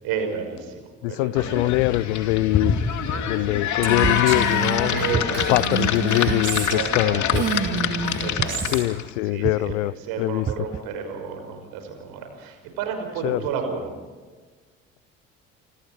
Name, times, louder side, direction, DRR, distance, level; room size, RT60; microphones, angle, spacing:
voice 1, 0.0-0.8 1.1-1.7 3.1-3.6 4.9-5.8 6.7-7.3 8.2-8.9 9.2-13.9, right 6 dB, 65° right, 6.0 m, -32 dB
voice 2, 1.0-2.7 3.3-5.0 5.5-7.4 8.7-9.9 10.2-10.5 13.2-13.4, left 19 dB, 70° left, 0.6 m, -23 dB
sound 1, 1.4-9.1, left 8 dB, 50° left, 2.6 m, -25 dB
Female speech woman speaking, 3.8-7.0 7.3-8.9, right 6 dB, 45° right, 4.1 m, -29 dB
sound 2, 4.0-4.5 5.1-5.6 6.3-6.7 7.3-7.7 8.4-8.8 9.4-9.8 10.5-10.8, right 7 dB, 25° right, 0.9 m, -28 dB
28.0 x 26.5 x 4.8 m
figure-of-eight pair, 55°, 38 cm